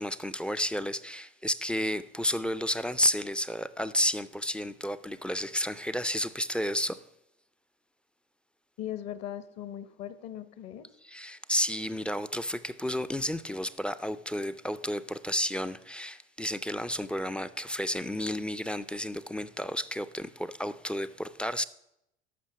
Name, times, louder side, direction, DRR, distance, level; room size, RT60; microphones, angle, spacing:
voice 1, 0.0-7.0 11.0-21.6, equal, 5° left, 0.3 m, -31 dB
voice 2, 8.8-10.9, left 11 dB, 55° left, 1.1 m, -39 dB
13.5 x 5.7 x 5.7 m
hypercardioid pair, 80°, 30 cm